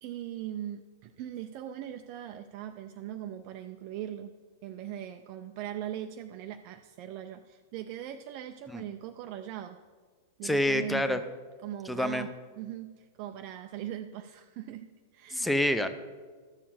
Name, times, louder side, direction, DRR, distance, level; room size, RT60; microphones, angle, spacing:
voice 1, 0.0-4.3 4.6-9.8 10.4-11.2 11.6-15.5, right 11 dB, 40° right, 7 dB, 0.4 m, -40 dB
voice 2, 10.4-11.2 11.9-12.3 15.3-15.9, left 1 dB, 5° left, 10 dB, 0.6 m, -27 dB
13.0 x 7.3 x 4.2 m, 1.5 s
figure-of-eight pair, 95°, 0 cm